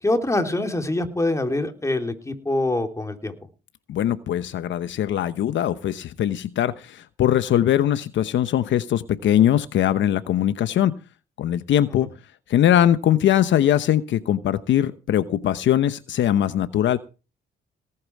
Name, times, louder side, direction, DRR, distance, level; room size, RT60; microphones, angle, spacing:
voice 1, 0.0-3.3, left 2 dB, 15° left, 6 dB, 3.4 m, -24 dB
voice 2, 3.9-11.0 11.4-12.1 12.5-17.0, left 11 dB, 70° left, 13 dB, 1.0 m, -21 dB
18.5 x 8.9 x 4.7 m, 0.33 s
cardioid pair, 90°, 20 cm